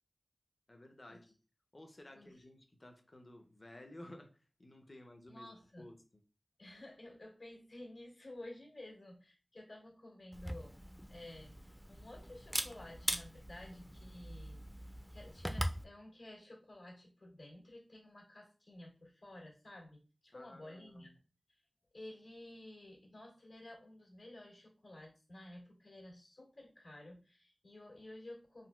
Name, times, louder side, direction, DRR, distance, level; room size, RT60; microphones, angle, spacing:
voice 1, 0.7-1.3 1.7-6.2 20.3-21.1, left 1 dB, 40° left, 0.6 m, -55 dB
voice 2, 5.3-5.9 6.6-10.8 11.1-21.1 21.5-21.6 21.9-28.7, left 1 dB, 85° left, 1.6 m, -53 dB
Camera, 10.3-15.8, equal, ahead, 0.4 m, -41 dB
3.9 x 2.2 x 2.2 m
wide cardioid pair, 50°, 0 cm